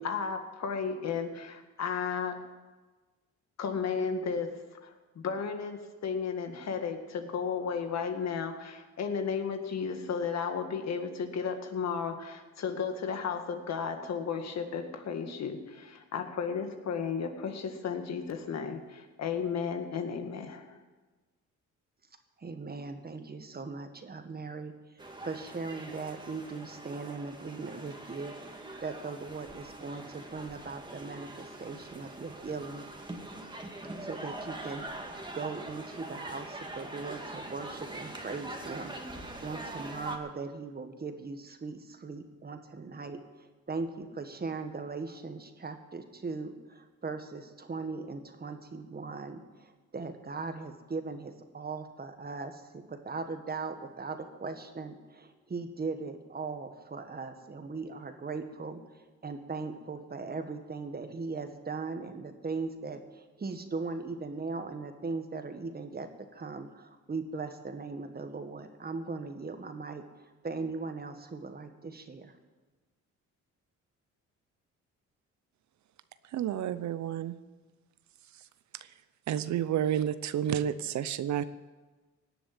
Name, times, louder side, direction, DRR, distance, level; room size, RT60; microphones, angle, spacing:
voice 1, 0.0-2.4 3.6-20.8, left 6 dB, 60° left, 6 dB, 1.9 m, -34 dB
voice 2, 22.4-24.7 25.2-32.9 34.0-58.8 59.2-72.3, right 4 dB, 30° right, 7 dB, 1.7 m, -39 dB
sound 1, 25.0-40.2, right 1 dB, 15° right, 2.1 m, -43 dB
voice 3, 76.3-77.4 79.3-81.4, right 10 dB, 70° right, 14 dB, 0.7 m, -30 dB
17.5 x 7.1 x 9.5 m, 1.3 s
cardioid pair, 90°, 30 cm